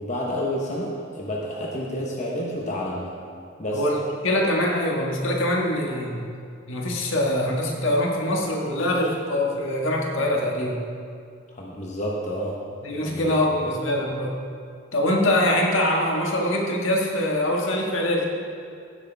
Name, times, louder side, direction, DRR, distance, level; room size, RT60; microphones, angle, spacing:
voice 1, 0.0-3.1 3.6-3.8 11.5-12.6 13.0-13.4, equal, 35° left, -3 dB, 1.0 m, -29 dB
voice 2, 3.7-6.2 6.7-10.8 12.8-14.3 14.9-18.2, left 1 dB, 75° left, -1 dB, 1.6 m, -23 dB
15.5 x 8.1 x 3.5 m, 2.3 s
head